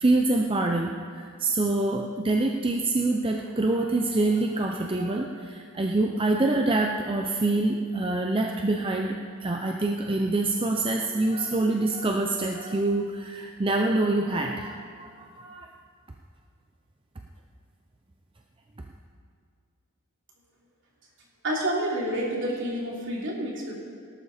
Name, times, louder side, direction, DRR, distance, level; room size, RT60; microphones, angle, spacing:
voice 1, 0.0-9.1 9.4-15.7, right 2 dB, 25° right, 2 dB, 0.6 m, -26 dB
voice 2, 21.4-23.7, right 1 dB, 55° right, -3 dB, 3.1 m, -29 dB
18.0 x 12.0 x 4.3 m, 2.2 s
head